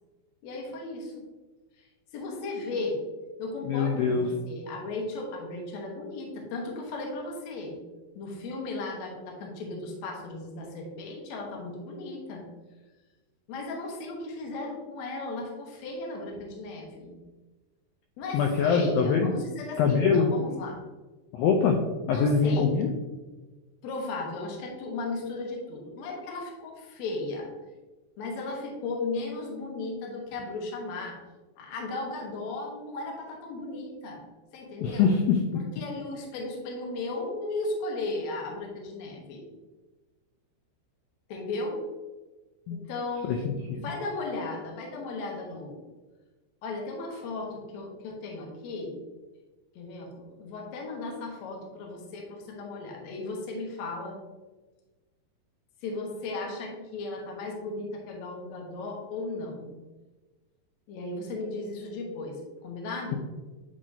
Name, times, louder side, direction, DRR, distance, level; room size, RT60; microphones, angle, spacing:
voice 1, 0.4-1.3 2.1-3.0 3.4-7.8 8.2-12.4 13.5-17.2 18.2-20.8 22.1-22.7 23.8-27.5 28.2-31.2 31.6-34.3 34.5-35.1 35.5-39.5 41.3-41.8 42.7-45.8 46.6-49.0 49.8-54.2 55.8-59.7 60.9-63.2, left 2 dB, 70° left, 0 dB, 1.7 m, -36 dB
voice 2, 3.6-4.2 18.3-19.3 19.8-20.3 21.3-21.8 22.1-22.9 34.8-35.6 42.7-42.8 43.3-43.5, left 5 dB, 85° left, 2 dB, 2.1 m, -23 dB
10.0 x 3.6 x 2.7 m, 1.2 s
omnidirectional pair, 4.7 m